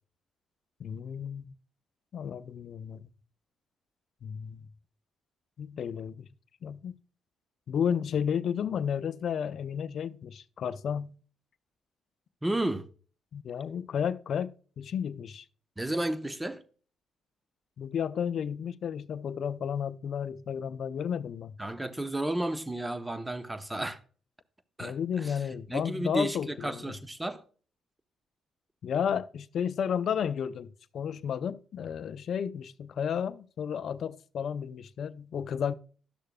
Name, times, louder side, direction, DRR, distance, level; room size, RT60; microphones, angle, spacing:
voice 1, 0.8-1.5 2.1-3.1 4.2-4.7 5.6-6.3 6.6-6.9 7.7-11.2 13.3-15.4 17.8-21.5 24.8-26.9 28.8-35.7, left 8 dB, 65° left, 0.5 m, -32 dB
voice 2, 12.4-12.9 15.8-16.6 21.6-24.0 24.8-25.4 25.7-27.4, right 1 dB, 15° right, 0.8 m, -32 dB
12.0 x 6.5 x 2.2 m
supercardioid pair, 65°, 0 cm